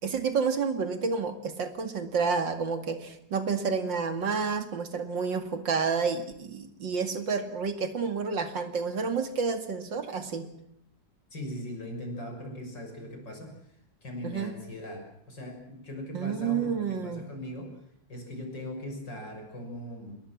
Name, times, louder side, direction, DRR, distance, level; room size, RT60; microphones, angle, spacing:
voice 1, 0.0-10.5 14.2-14.5 16.1-17.3, right 5 dB, 85° right, 8 dB, 3.0 m, -30 dB
voice 2, 11.3-13.7 14.0-17.8 18.1-20.2, left 1 dB, 75° left, 3 dB, 7.1 m, -40 dB
28.0 x 20.5 x 7.4 m, 0.78 s
omnidirectional pair, 1.9 m